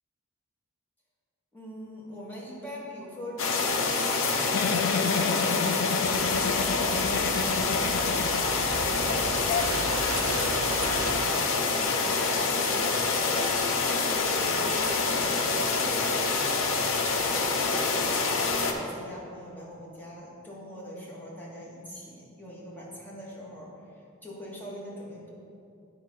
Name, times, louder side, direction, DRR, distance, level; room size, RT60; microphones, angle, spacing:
voice 1, 1.5-6.0 6.4-7.1 8.2-10.5 10.8-11.4 11.7-16.7 17.2-18.4 18.7-25.3, equal, 10° left, -6 dB, 1.6 m, -42 dB
sound 1, 3.4-18.7, left 4 dB, 70° left, 0.7 m, -26 dB
Giggle, 4.5-8.8 9.1-9.2 9.5-9.7, left 6 dB, 50° left, 0.3 m, -31 dB
sound 2, 6.0-11.2, right 4 dB, 85° right, 0.5 m, -37 dB
9.2 x 4.4 x 5.4 m, 2.5 s
head